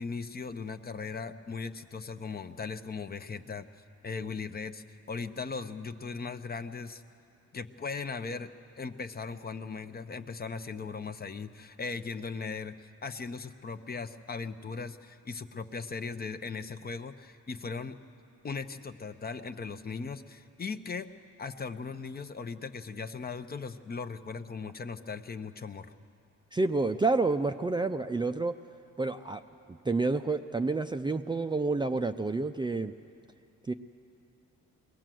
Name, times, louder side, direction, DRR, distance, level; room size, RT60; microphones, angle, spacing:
voice 1, 0.0-3.7 4.0-7.0 7.5-8.5 8.8-18.0 18.4-21.1 21.4-25.9, left 4 dB, 30° left, 9 dB, 0.8 m, -38 dB
voice 2, 26.5-28.6 29.0-29.4 29.7-32.9 33.7-33.8, right 3 dB, 15° right, 7 dB, 0.5 m, -29 dB
22.0 x 17.5 x 7.7 m, 2.6 s
cardioid pair, 90°, 30 cm